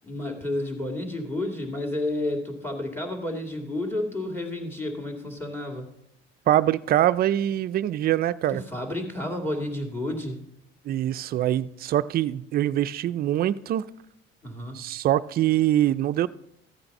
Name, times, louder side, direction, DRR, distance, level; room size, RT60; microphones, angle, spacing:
voice 1, 0.0-5.9 8.5-10.4 14.4-14.8, left 1 dB, 10° left, 2 dB, 2.3 m, -31 dB
voice 2, 6.5-8.6 10.9-13.8 14.8-16.3, right 12 dB, 50° right, 13 dB, 0.5 m, -23 dB
14.0 x 8.8 x 5.4 m, 0.78 s
cardioid pair, 130°, 19 cm